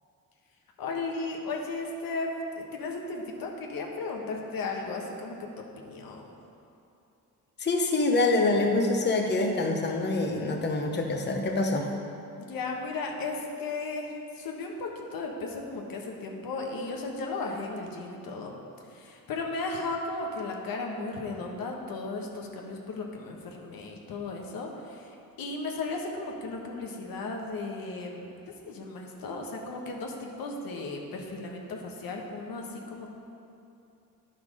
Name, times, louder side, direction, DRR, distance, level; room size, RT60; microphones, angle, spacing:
voice 1, 0.8-6.3 12.4-18.5 18.9-33.1, left 3 dB, 70° left, 1 dB, 1.3 m, -35 dB
voice 2, 7.6-11.9, left 2 dB, 30° left, 1 dB, 1.0 m, -25 dB
9.8 x 5.8 x 5.0 m, 2.7 s
cardioid pair, 85°, 36 cm